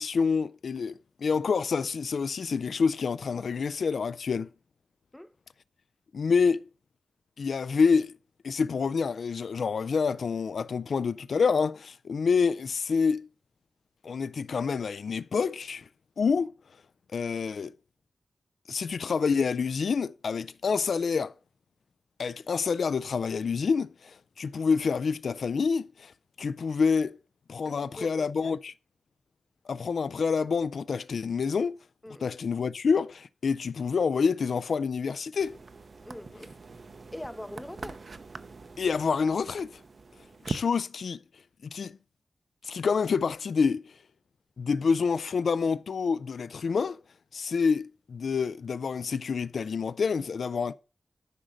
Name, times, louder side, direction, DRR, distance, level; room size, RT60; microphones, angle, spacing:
voice 1, 0.0-4.5 6.1-6.6 7.4-8.1 8.4-13.3 14.0-15.9 16.2-16.5 17.1-17.7 18.7-21.3 22.2-27.2 27.5-28.7 29.7-31.8 32.2-35.6 38.8-39.8 40.5-41.2 41.6-41.9 42.6-44.0 44.6-47.0 47.3-50.7, left 5 dB, 70° left, 0.3 m, -27 dB
voice 2, 27.6-28.6 32.0-32.3 36.0-36.5 36.9-38.1, left 1 dB, 10° left, 0.5 m, -43 dB
sound 1, 35.4-40.7, right 4 dB, 45° right, 0.6 m, -42 dB
10.0 x 3.9 x 6.3 m
wide cardioid pair, 150°, 0 cm